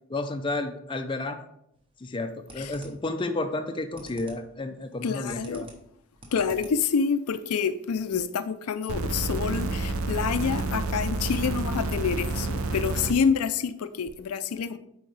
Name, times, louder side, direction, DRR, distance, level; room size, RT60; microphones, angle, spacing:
voice 1, 0.1-1.5 2.0-5.7, left 2 dB, 20° left, 6 dB, 0.4 m, -31 dB
sound 1, 1.7-2.1 2.5-3.1 3.6-4.5 4.8-7.0, right 1 dB, 25° right, 1.0 m, -47 dB
voice 2, 5.0-5.6 6.3-14.8, left 6 dB, 85° left, 12 dB, 0.4 m, -27 dB
sound 2, 8.9-13.1 14.1-14.2, right 2 dB, 75° right, 0.7 m, -29 dB
7.8 x 4.6 x 3.3 m, 0.74 s
head